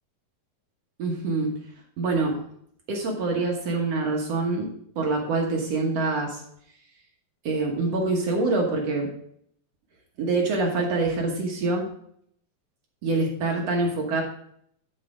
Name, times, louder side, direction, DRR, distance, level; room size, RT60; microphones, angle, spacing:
voice 1, 1.0-1.5 2.0-2.4 2.9-6.4 7.4-9.1 10.2-11.9 13.0-14.2, right 3 dB, 60° right, 0 dB, 2.1 m, -25 dB
11.0 x 4.9 x 4.9 m, 0.67 s
omnidirectional pair, 3.9 m